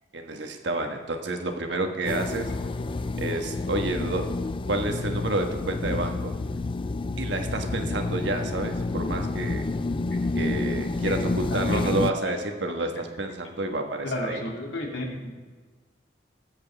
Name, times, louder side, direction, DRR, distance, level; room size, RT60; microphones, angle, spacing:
voice 1, 0.1-2.5 3.2-4.2 4.7-6.3 7.2-9.6 10.3-14.4, right 2 dB, 70° right, 4 dB, 1.4 m, -29 dB
sound 1, 2.1-12.1, left 3 dB, 30° left, 0.4 m, -29 dB
voice 2, 11.5-11.8 12.2-12.3 14.0-15.3, left 1 dB, 85° left, -1 dB, 2.7 m, -32 dB
20.5 x 8.1 x 3.5 m, 1.5 s
head